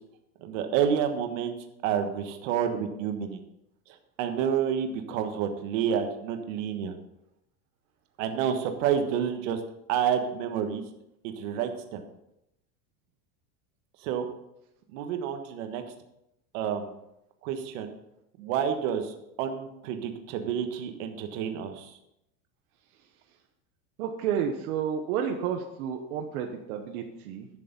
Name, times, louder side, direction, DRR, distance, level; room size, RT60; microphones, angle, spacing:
voice 1, 0.4-1.5 1.8-3.4 4.2-6.9 8.2-9.6 9.9-10.8 11.2-12.0 14.0-14.3 14.9-15.8 16.5-16.9 17.4-17.9 18.4-22.0, right 8 dB, 60° right, 6 dB, 1.4 m, -29 dB
voice 2, 24.0-27.5, right 8 dB, 75° right, 4 dB, 1.2 m, -31 dB
11.0 x 6.7 x 5.2 m, 0.84 s
supercardioid pair, 170°, 44 cm